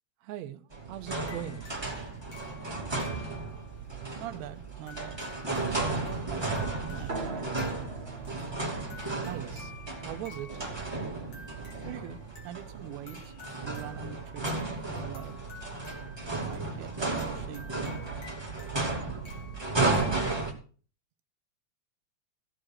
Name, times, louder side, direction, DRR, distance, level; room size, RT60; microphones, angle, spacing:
voice 1, 0.2-1.8 9.2-9.7 10.0-10.6, right 12 dB, 70° right, 1.9 m, -40 dB
sound 1, 0.7-20.5, right 3 dB, 10° right, 2.5 m, -34 dB
sound 2, 1.1-20.5, left 4 dB, 45° left, 4.1 m, -52 dB
voice 2, 4.2-5.2 5.8-7.5 11.8-13.3 13.6-15.4 16.3-18.1, right 12 dB, 90° right, 2.3 m, -44 dB
sound 3, 7.1-12.1, right 3 dB, 45° right, 0.8 m, -43 dB
16.0 x 6.3 x 6.4 m
omnidirectional pair, 3.5 m